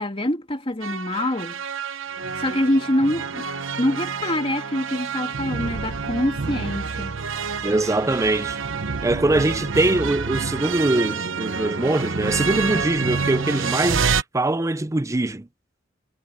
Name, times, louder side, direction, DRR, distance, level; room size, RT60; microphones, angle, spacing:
voice 1, 0.0-1.6 2.4-3.5 3.8-7.2, left 1 dB, 30° left, 2.6 m, -25 dB
sound 1, 0.8-14.2, right 5 dB, 80° right, 0.9 m, -28 dB
voice 2, 7.6-8.6 9.0-15.5, right 2 dB, 15° right, 0.5 m, -22 dB
head